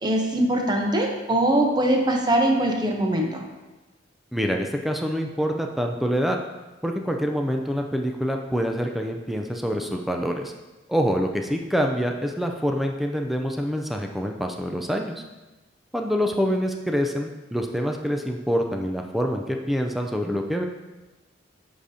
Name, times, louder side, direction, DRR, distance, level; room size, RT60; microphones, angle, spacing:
voice 1, 0.0-3.5, right 1 dB, 20° right, 1 dB, 0.7 m, -22 dB
voice 2, 4.3-6.4 6.8-10.5 10.9-15.2 15.9-20.6, equal, ahead, 2 dB, 0.3 m, -26 dB
7.7 x 4.9 x 2.7 m, 1.1 s
head